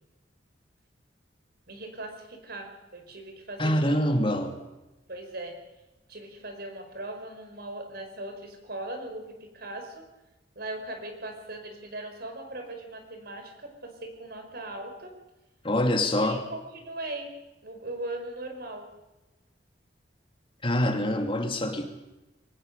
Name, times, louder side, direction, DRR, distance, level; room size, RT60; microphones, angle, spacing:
voice 1, 1.7-4.0 4.4-4.5 5.1-5.6 6.1-10.1 10.5-15.2 16.2-17.3 17.6-18.9, right 1 dB, 60° right, 5 dB, 5.0 m, -39 dB
voice 2, 3.6-4.6 15.6-16.4 20.6-21.9, left 1 dB, 30° left, 5 dB, 2.6 m, -25 dB
23.0 x 19.0 x 6.8 m, 1.0 s
head